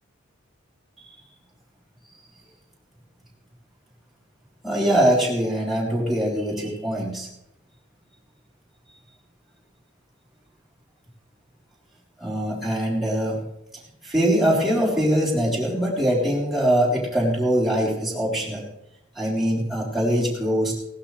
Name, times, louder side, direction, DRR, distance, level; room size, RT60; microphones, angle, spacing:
voice 1, 4.6-7.3 12.2-13.4 14.0-18.6 19.2-20.7, equal, ahead, -6 dB, 3.8 m, -22 dB
18.0 x 12.0 x 3.3 m, 0.78 s
head